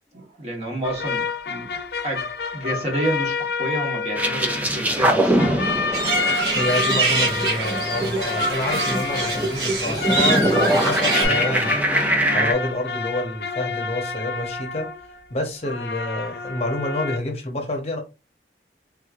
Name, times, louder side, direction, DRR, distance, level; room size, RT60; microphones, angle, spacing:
voice 1, 0.1-1.7 2.0-5.7, right 1 dB, 35° right, 1.2 m, -29 dB
sound 1, 0.8-5.1 5.4-15.2 15.6-17.2, left 4 dB, 60° left, 0.4 m, -29 dB
sound 2, 4.1-12.5, right 1 dB, 10° right, 0.5 m, -23 dB
sound 3, 5.9-11.3, right 3 dB, 75° right, 1.5 m, -25 dB
voice 2, 6.5-11.7 12.3-14.9 15.3-18.0, left 1 dB, 35° left, 0.8 m, -28 dB
3.5 x 3.1 x 2.4 m
head